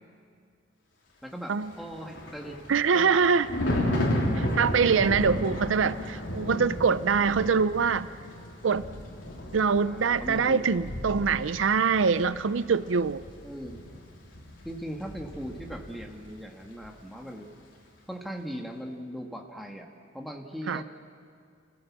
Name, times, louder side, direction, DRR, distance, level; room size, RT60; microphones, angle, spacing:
voice 1, 1.2-2.6 2.9-3.3 9.7-10.6 13.4-13.8 14.6-17.5 18.1-19.9 20.1-20.8, equal, ahead, 1 dB, 1.6 m, -39 dB
Thunder, 1.7-16.3 16.6-16.9, left 1 dB, 75° left, 3.4 m, -34 dB
voice 2, 2.7-3.5 4.4-8.1 8.6-8.8 9.5-13.2 20.7-20.8, right 5 dB, 85° right, 15 dB, 0.5 m, -24 dB
28.5 x 16.5 x 7.4 m, 2.3 s
head